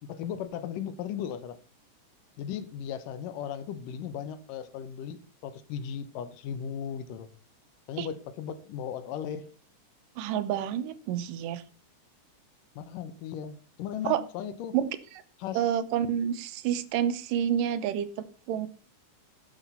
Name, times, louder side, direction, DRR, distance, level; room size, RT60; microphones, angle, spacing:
voice 1, 0.0-1.6 2.4-7.3 7.9-9.5 12.8-14.8 15.4-15.7, left 8 dB, 90° left, 2.5 m, -37 dB
voice 2, 10.2-11.6 14.1-14.2 14.7-14.9 15.5-18.7, right 10 dB, 90° right, 2.5 m, -29 dB
10.0 x 7.0 x 5.5 m
omnidirectional pair, 3.8 m